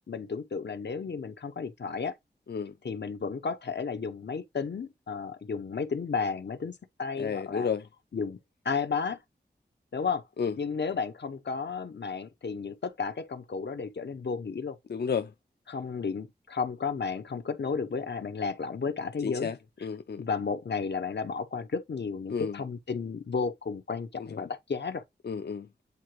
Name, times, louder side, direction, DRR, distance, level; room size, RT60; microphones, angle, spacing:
voice 1, 0.1-2.1 2.8-7.7 8.1-8.4 8.6-9.2 9.9-10.2 10.6-14.8 15.7-19.5 20.2-25.0, left 5 dB, 85° left, 1.0 m, -33 dB
voice 2, 7.2-7.8 10.4-10.5 14.9-15.3 19.2-19.6 19.8-20.2 22.3-22.6 24.2-24.4 25.2-25.7, left 6 dB, 70° left, 0.5 m, -31 dB
8.4 x 3.8 x 3.1 m
wide cardioid pair, 55°, 18 cm